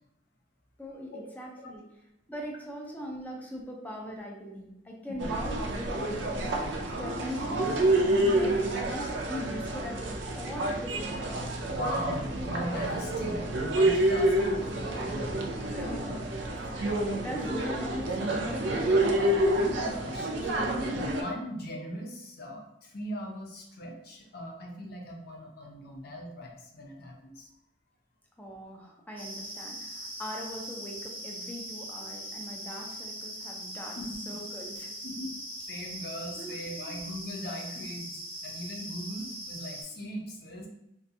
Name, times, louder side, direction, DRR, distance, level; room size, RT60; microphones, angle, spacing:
voice 1, 0.8-1.8 2.3-6.6 7.0-8.0 8.3-11.5 15.7-16.3 16.7-19.1 28.4-34.0 34.3-34.9 36.4-37.1, equal, 10° left, -1 dB, 0.4 m, -41 dB
sound 1, 5.2-21.2, right 1 dB, 75° right, 0.4 m, -28 dB
voice 2, 11.7-15.9 19.8-27.5 34.0-34.2 35.0-35.3 35.6-40.7, equal, 60° left, 0 dB, 0.6 m, -39 dB
sound 2, 29.2-39.8, equal, 10° right, 0.8 m, -41 dB
2.4 x 2.2 x 2.6 m, 0.83 s
head